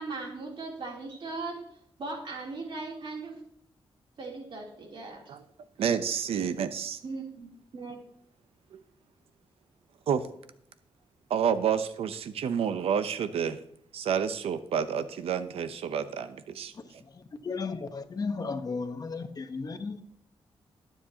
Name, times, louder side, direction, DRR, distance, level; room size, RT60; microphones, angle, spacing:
voice 1, 0.0-1.6 2.0-3.3 4.2-5.2 7.0-8.0, right 3 dB, 60° right, -2 dB, 3.2 m, -38 dB
voice 2, 5.8-7.0 8.7-8.8 10.1-10.2 11.3-13.6 13.9-16.7, right 7 dB, 85° right, 12 dB, 0.7 m, -29 dB
voice 3, 17.4-20.0, left 4 dB, 40° left, 7 dB, 1.0 m, -34 dB
21.0 x 7.3 x 2.9 m, 0.71 s
cardioid pair, 100°, 10 cm